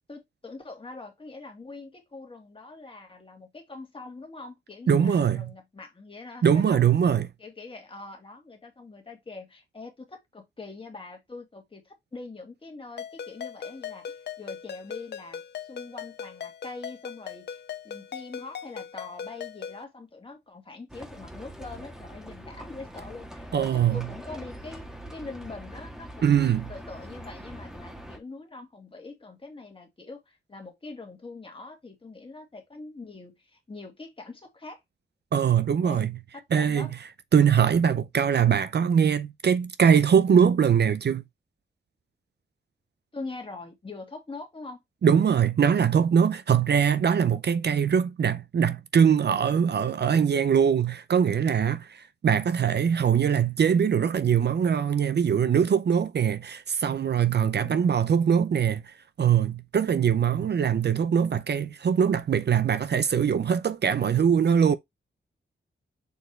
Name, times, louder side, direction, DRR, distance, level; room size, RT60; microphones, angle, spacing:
voice 1, 0.1-6.8 7.4-34.8 35.8-36.1 36.3-36.9 43.1-44.8 57.6-58.0, left 3 dB, 25° left, 2.2 m, -43 dB
voice 2, 4.9-5.5 6.4-7.3 23.5-24.1 26.2-26.7 35.3-36.2 36.5-36.9 37.3-41.2 45.0-64.8, right 7 dB, 55° right, 0.5 m, -22 dB
Ringtone, 13.0-19.8, left 8 dB, 55° left, 0.5 m, -39 dB
Livestock farm animals working animals, 20.9-28.2, right 1 dB, 5° right, 1.6 m, -43 dB
6.6 x 4.5 x 3.2 m
wide cardioid pair, 180°, 20 cm